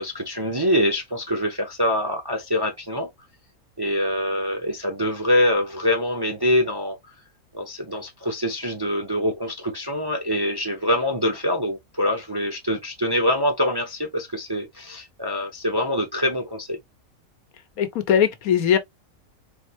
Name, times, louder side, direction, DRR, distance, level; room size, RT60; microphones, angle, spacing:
voice 1, 0.0-3.1 3.8-7.0 7.5-16.8, left 1 dB, 25° right, 0.5 m, -24 dB
voice 2, 17.8-18.8, left 8 dB, 80° left, 1.3 m, -20 dB
4.1 x 3.2 x 2.8 m
omnidirectional pair, 1.5 m